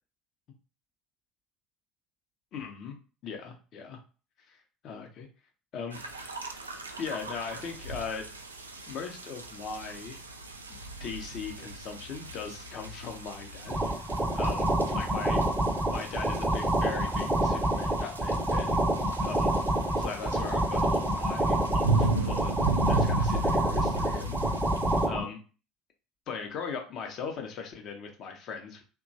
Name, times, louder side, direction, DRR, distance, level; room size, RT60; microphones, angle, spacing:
voice 1, 2.5-3.0 3.2-4.0 4.5-5.3 5.7-6.0 7.0-8.3 8.9-10.2 10.7-15.4 15.9-18.8 19.2-19.5 19.9-22.6 22.8-24.4 25.0-25.4 26.3-28.8, left 5 dB, 50° left, 4 dB, 0.7 m, -39 dB
sound 1, 5.9-25.1, right 2 dB, 85° right, 0.3 m, -36 dB
sound 2, 13.7-25.2, right 1 dB, 10° right, 0.7 m, -27 dB
2.9 x 2.2 x 2.6 m, 0.36 s
figure-of-eight pair, 60°, 0 cm